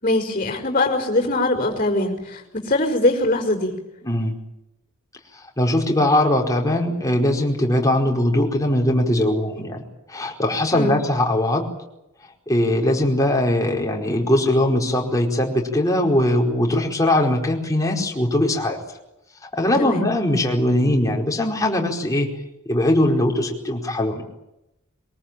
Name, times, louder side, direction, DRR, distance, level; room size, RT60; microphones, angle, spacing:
voice 1, 0.0-3.8 10.7-10.9 19.8-20.0, left 2 dB, 35° left, 2 dB, 4.9 m, -22 dB
voice 2, 4.0-4.4 5.3-9.8 10.1-11.7 12.5-18.8 19.4-22.3 22.7-24.2, left 1 dB, 15° left, 0 dB, 4.7 m, -20 dB
23.5 x 23.0 x 8.9 m, 0.90 s
head